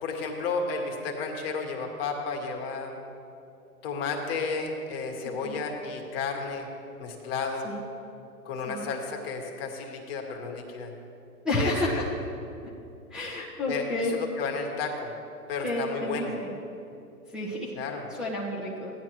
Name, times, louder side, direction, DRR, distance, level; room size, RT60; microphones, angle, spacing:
voice 1, 0.0-2.9 3.8-6.7 7.0-7.7 8.4-10.9 11.5-12.0 13.7-15.1 15.5-16.3 17.7-18.0, left 4 dB, 40° left, 2 dB, 1.5 m, -32 dB
voice 2, 11.4-12.0 13.1-14.1 15.6-16.5 17.3-17.7 18.2-18.9, left 1 dB, ahead, -9 dB, 1.0 m, -30 dB
15.5 x 10.5 x 3.0 m, 2.7 s
hypercardioid pair, 130°, 46 cm